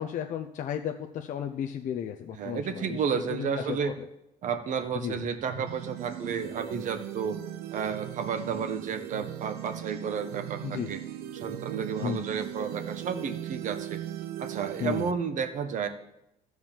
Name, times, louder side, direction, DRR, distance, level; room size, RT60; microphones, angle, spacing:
voice 1, 0.0-3.9 5.0-5.2 10.6-10.9 12.0-12.2 14.8-15.1, left 9 dB, 55° left, 3 dB, 0.7 m, -34 dB
voice 2, 2.3-3.9 4.4-7.4 7.7-11.0 11.3-14.0 14.4-15.9, right 6 dB, 55° right, 8 dB, 1.1 m, -32 dB
sound 1, 5.5-15.1, right 12 dB, 85° right, 0.7 m, -38 dB
13.0 x 4.7 x 7.3 m, 0.86 s
cardioid pair, 140°, 15 cm